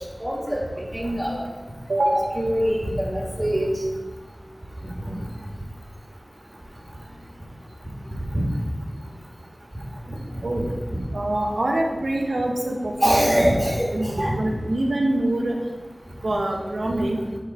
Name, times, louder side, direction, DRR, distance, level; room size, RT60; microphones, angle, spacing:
voice 1, 0.2-0.6 0.9-1.5 2.3-3.8 5.1-5.2 10.1-10.2 10.9-11.0 13.0-14.4, equal, 10° right, -2 dB, 1.4 m, -23 dB
voice 2, 1.9-2.3 10.4-10.7 11.1-13.4 13.9-15.6 16.2-17.2, right 1 dB, 75° right, 0 dB, 0.9 m, -24 dB
8.0 x 3.2 x 4.3 m, 1.3 s
wide cardioid pair, 60°, 0 cm